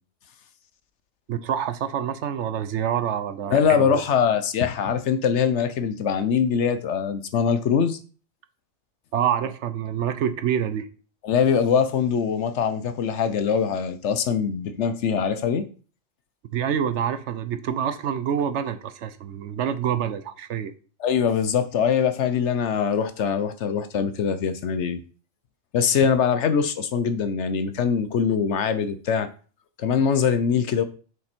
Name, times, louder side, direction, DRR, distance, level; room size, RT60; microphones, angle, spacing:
voice 1, 1.3-4.0 9.1-10.9 16.5-20.7, right 9 dB, 65° right, 0.9 m, -26 dB
voice 2, 3.5-8.0 11.2-15.6 21.0-25.0 25.7-29.3 29.8-30.8, left 7 dB, 65° left, 0.9 m, -23 dB
6.6 x 5.3 x 4.4 m
omnidirectional pair, 1.4 m